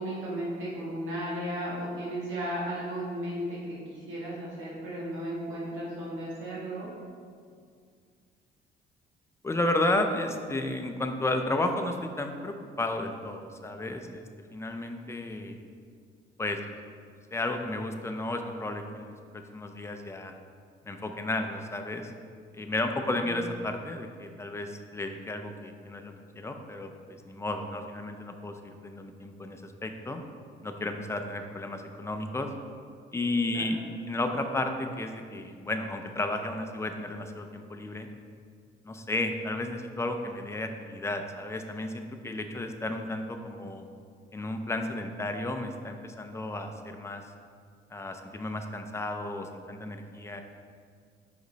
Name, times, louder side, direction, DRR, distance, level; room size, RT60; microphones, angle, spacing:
voice 1, 0.0-6.9 23.2-23.4 33.5-33.7, right 1 dB, 85° right, -6 dB, 1.5 m, -35 dB
voice 2, 9.4-14.3 14.5-15.6 16.4-16.6 17.3-20.3 20.8-22.1 22.5-30.2 30.6-32.5 33.1-33.8 34.1-38.1 38.8-43.9 44.3-47.2 47.9-50.4, left 2 dB, 15° left, 5 dB, 0.5 m, -33 dB
5.1 x 5.1 x 4.0 m, 2.1 s
cardioid pair, 90°, 20 cm